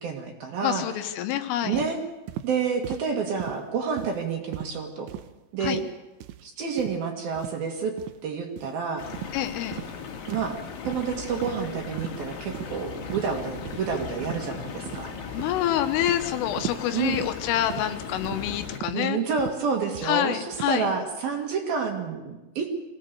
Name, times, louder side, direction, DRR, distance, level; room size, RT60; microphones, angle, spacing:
voice 1, 0.0-0.8 1.6-2.0 2.4-5.1 5.5-5.8 6.4-7.9 8.2-9.1 10.3-10.6 10.8-15.1 16.9-17.2 18.9-22.7, right 5 dB, 55° right, 3 dB, 3.2 m, -29 dB
voice 2, 0.6-1.8 5.6-5.8 9.3-9.8 15.3-19.2 20.0-20.9, left 12 dB, 80° left, 8 dB, 3.7 m, -27 dB
sound 1, 1.7-1.9 2.3-2.5 2.8-3.1 3.4-3.6 4.0-4.2 4.5-4.7 5.1-5.3 5.6-5.9 6.2-6.4 6.8-7.0 7.3-7.6 8.0-8.2 8.6-8.7 9.1-9.3 9.7-9.9 10.3-10.5 10.8-11.0 11.4-11.7 12.0-12.2 12.5-12.8 13.1-13.3 13.7-13.8 14.2-14.5 14.9-15.1 15.4-15.6 16.0-16.2 16.6-16.8 17.1-17.3 17.7-17.9 18.2-18.5 18.8-19.0 19.4-19.6 19.9-20.1 20.5-20.7, right 13 dB, 80° right, 3.0 m, -37 dB
sound 2, 9.0-18.8, left 6 dB, 55° left, 3.2 m, -38 dB
23.0 x 17.0 x 6.9 m, 1.1 s
omnidirectional pair, 5.7 m